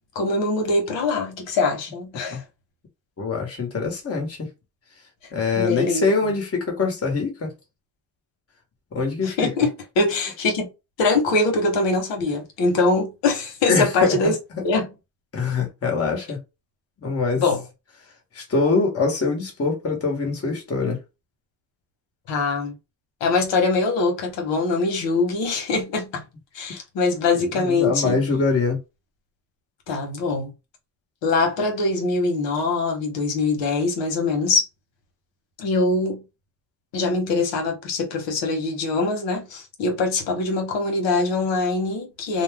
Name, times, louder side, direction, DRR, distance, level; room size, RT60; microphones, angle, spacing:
voice 1, 0.1-2.4 5.6-6.1 9.2-10.7 11.0-14.4 14.6-14.9 17.4-17.6 22.3-22.7 23.2-26.2 26.5-28.2 29.9-30.5 31.2-34.7 35.6-36.2 36.9-42.4, left 3 dB, 90° left, 1.2 m, -23 dB
voice 2, 3.2-4.5 5.3-7.5 8.9-9.5 13.6-14.3 15.3-16.4 17.0-17.4 18.3-21.0 27.4-28.8, left 4 dB, 35° left, 1.2 m, -24 dB
2.5 x 2.2 x 3.5 m
cardioid pair, 100°, 42 cm